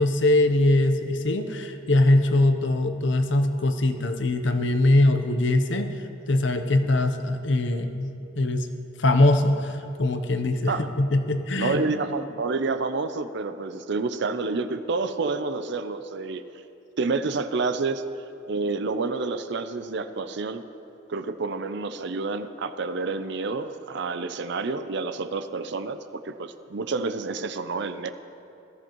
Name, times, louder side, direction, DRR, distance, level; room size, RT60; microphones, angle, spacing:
voice 1, 0.0-5.9 6.3-8.1 8.4-8.7 9.0-12.0, left 2 dB, 70° left, 7 dB, 0.8 m, -22 dB
voice 2, 11.5-16.4 17.0-20.6 21.1-26.0 26.2-28.1, right 3 dB, 65° right, 10 dB, 0.6 m, -29 dB
18.0 x 13.5 x 3.1 m, 2.7 s
head